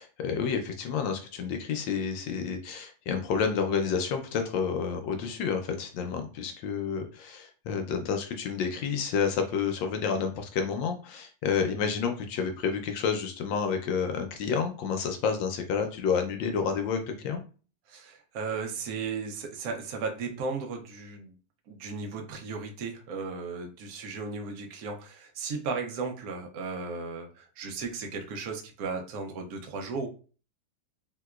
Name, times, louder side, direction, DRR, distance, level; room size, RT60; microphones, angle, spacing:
voice 1, 0.0-17.4, left 6 dB, 75° left, 5 dB, 1.2 m, -29 dB
voice 2, 17.9-21.3 21.7-30.1, right 4 dB, 70° right, 4 dB, 0.8 m, -35 dB
3.4 x 2.9 x 2.3 m, 0.37 s
omnidirectional pair, 2.2 m